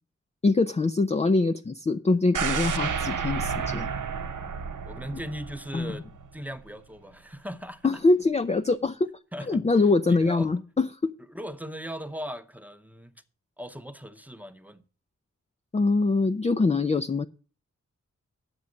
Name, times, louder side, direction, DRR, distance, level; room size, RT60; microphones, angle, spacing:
voice 1, 0.4-3.9 5.7-6.0 7.8-9.1 9.5-11.1 15.7-17.3, left 3 dB, 20° left, 0.4 m, -23 dB
sound 1, 2.3-6.3 6.7-6.8, right 6 dB, 85° right, 0.8 m, -31 dB
voice 2, 4.8-6.1 6.3-7.9 9.3-9.6 10.1-10.5 11.3-13.2 13.6-14.8, equal, 5° right, 0.8 m, -38 dB
9.6 x 7.0 x 6.3 m
wide cardioid pair, 100°, 30 cm